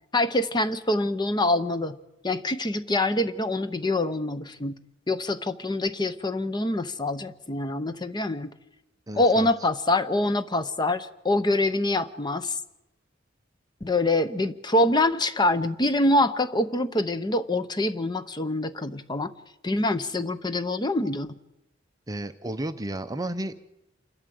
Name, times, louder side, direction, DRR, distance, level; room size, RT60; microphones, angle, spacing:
voice 1, 0.1-2.0 2.2-4.7 5.1-8.5 9.1-12.6 13.8-19.3 19.6-21.3, left 2 dB, 20° left, 11 dB, 0.7 m, -25 dB
voice 2, 9.1-9.5 22.1-23.6, right 1 dB, 20° right, 11 dB, 0.6 m, -32 dB
28.0 x 12.5 x 7.7 m, 0.95 s
head